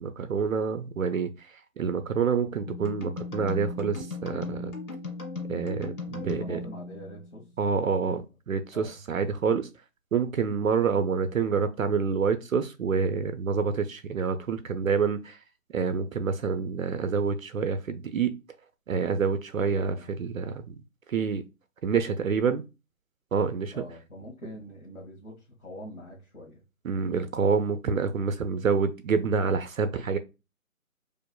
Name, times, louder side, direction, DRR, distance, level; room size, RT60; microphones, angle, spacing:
voice 1, 0.0-1.5 1.8-4.7 5.5-6.6 7.6-8.2 8.5-9.7 10.1-15.4 15.7-18.3 18.9-20.7 21.1-21.4 21.8-22.6 23.3-23.8 26.8-30.2, right 5 dB, 70° right, 0.5 m, -27 dB
sound 1, 2.7-7.5, left 3 dB, 80° left, 1.7 m, -37 dB
voice 2, 6.1-8.2 8.7-9.0 19.7-20.1 23.7-26.6, equal, 60° left, 1.5 m, -44 dB
4.5 x 2.5 x 2.2 m
hypercardioid pair, 175°, 43 cm